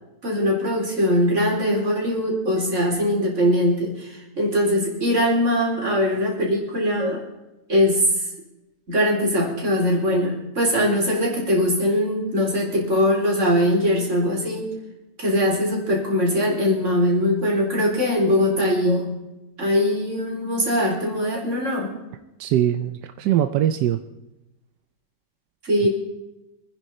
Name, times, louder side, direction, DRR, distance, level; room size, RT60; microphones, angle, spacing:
voice 1, 0.2-7.2 7.7-8.3 8.9-14.7 15.2-19.1 19.6-21.9 25.6-25.9, equal, 45° right, -2 dB, 4.5 m, -21 dB
voice 2, 22.4-24.0, right 11 dB, 90° right, 9 dB, 1.3 m, -21 dB
25.5 x 10.0 x 4.3 m, 0.97 s
omnidirectional pair, 1.7 m